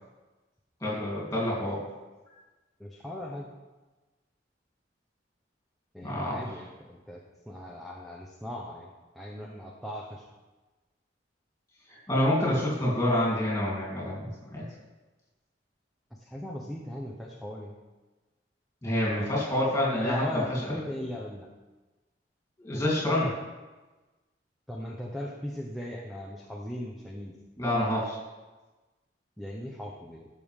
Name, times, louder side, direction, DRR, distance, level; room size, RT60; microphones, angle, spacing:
voice 1, 0.8-1.8 6.0-6.5 12.1-14.6 18.8-20.8 22.6-23.3 27.6-28.2, left 1 dB, 15° left, -5 dB, 3.3 m, -27 dB
voice 2, 2.8-3.5 5.9-10.2 16.2-17.7 20.0-21.5 24.7-27.3 29.4-30.3, left 1 dB, ahead, -2 dB, 0.8 m, -38 dB
14.0 x 6.4 x 3.7 m, 1.2 s
head